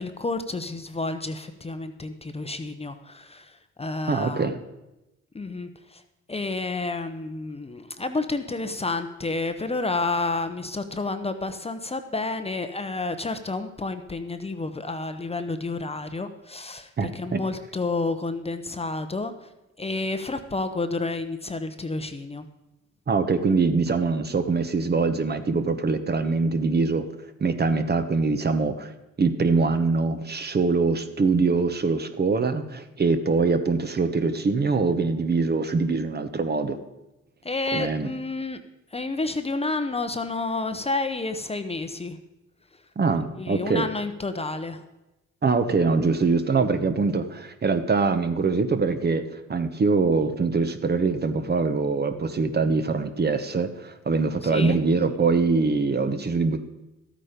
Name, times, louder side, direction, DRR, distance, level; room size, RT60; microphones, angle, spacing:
voice 1, 0.0-4.5 5.3-6.0 6.3-19.5 19.8-22.5 37.4-38.6 38.9-42.2 43.4-44.8 54.4-54.8, left 3 dB, 20° left, 9 dB, 0.8 m, -30 dB
voice 2, 4.1-4.6 17.0-17.4 23.1-27.1 27.4-28.9 29.2-36.8 37.7-38.1 43.0-43.9 45.4-56.6, right 4 dB, 35° right, 9 dB, 1.0 m, -23 dB
12.5 x 8.8 x 5.1 m, 0.98 s
cardioid pair, 90°, 30 cm